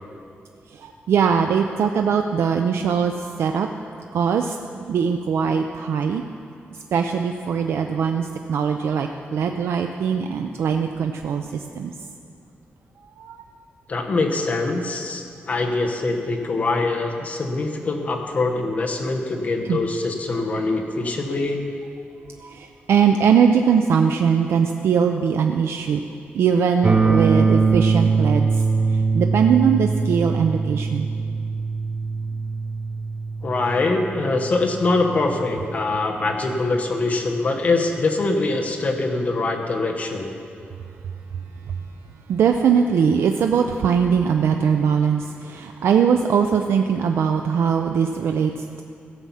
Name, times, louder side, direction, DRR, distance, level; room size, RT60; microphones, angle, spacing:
voice 1, 0.7-3.7 4.1-6.2 6.9-11.9 13.2-13.4 19.7-19.8 22.4-26.0 26.3-28.6 28.9-31.1 41.7-41.8 42.3-48.8, right 7 dB, 85° right, 5 dB, 0.5 m, -21 dB
voice 2, 13.9-21.6 33.4-40.3, left 3 dB, 40° left, 2 dB, 1.1 m, -23 dB
sound 1, 26.8-36.8, right 4 dB, 25° right, 0.8 m, -23 dB
15.5 x 7.5 x 5.7 m, 2.4 s
wide cardioid pair, 165°, 4 cm